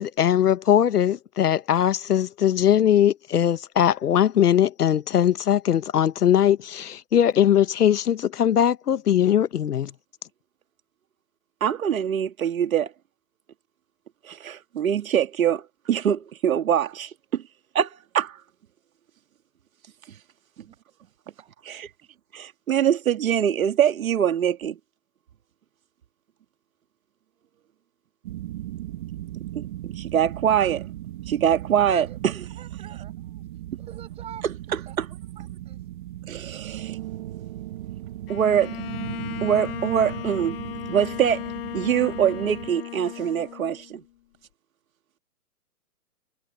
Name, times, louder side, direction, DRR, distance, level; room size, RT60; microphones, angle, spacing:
voice 1, 0.0-9.9, left 10 dB, 75° left, 1.2 m, -20 dB
voice 2, 11.6-12.9 14.2-17.4 17.7-18.4 21.6-21.9 22.3-24.8 29.5-30.8 31.3-32.3 34.7-35.1 36.3-37.0 38.3-38.8 39.4-40.6 40.9-41.4 41.7-44.0, right 9 dB, 60° right, 2.2 m, -24 dB
sound 1, 28.2-42.7, right 14 dB, 30° right, 1.5 m, -37 dB
voice 3, 31.9-32.2 32.6-33.4 33.7-34.4 34.9-35.0 35.4-35.8, right 10 dB, 15° right, 6.1 m, -44 dB
Bowed string instrument, 38.3-44.0, left 14 dB, 35° left, 1.7 m, -36 dB
hypercardioid pair, 160°, 47 cm